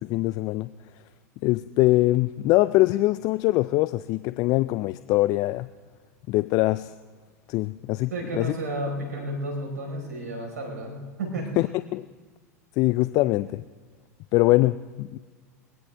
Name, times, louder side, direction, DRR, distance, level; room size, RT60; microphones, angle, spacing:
voice 1, 0.0-0.7 1.4-5.7 6.3-6.9 7.5-8.5 11.6-11.7 11.9-12.1 12.8-13.6 14.3-15.2, left 18 dB, 45° left, 15 dB, 0.4 m, -23 dB
voice 2, 8.1-11.5, right 1 dB, 80° right, 1 dB, 4.6 m, -32 dB
22.0 x 17.0 x 3.5 m, 1.4 s
hypercardioid pair, 90°, 9 cm